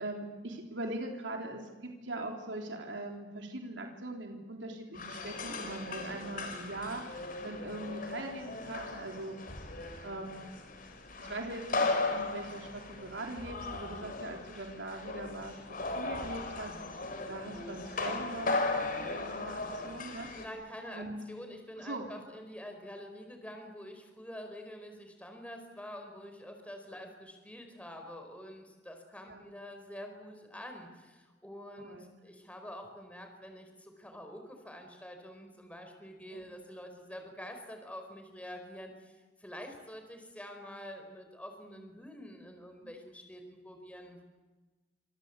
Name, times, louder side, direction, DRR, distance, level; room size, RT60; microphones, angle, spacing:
voice 1, 0.0-9.4 10.0-10.5 11.2-20.3 20.9-21.2 21.8-22.1 29.3-29.5 31.8-32.1 36.3-36.5 42.8-42.9, right 2 dB, 90° right, 2 dB, 3.5 m, -41 dB
sound 1, 4.9-20.5, left 3 dB, 50° left, 4.4 m, -37 dB
voice 2, 20.3-44.2, equal, 10° left, 5 dB, 4.8 m, -47 dB
28.0 x 26.0 x 8.3 m, 1.2 s
head